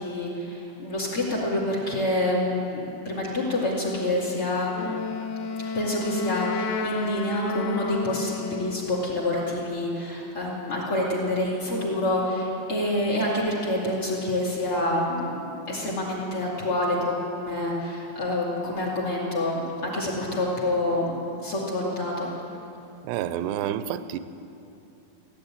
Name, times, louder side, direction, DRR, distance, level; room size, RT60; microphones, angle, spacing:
voice 1, 0.0-4.9 5.6-21.2 21.4-22.3, left 1 dB, 40° left, -3 dB, 2.6 m, -27 dB
Wind instrument woodwind instrument, 4.7-9.0, left 4 dB, 85° left, 1.8 m, -31 dB
voice 2, 23.0-24.2, right 11 dB, 85° right, 13 dB, 2.7 m, -29 dB
16.0 x 10.5 x 8.7 m, 2.7 s
omnidirectional pair, 4.8 m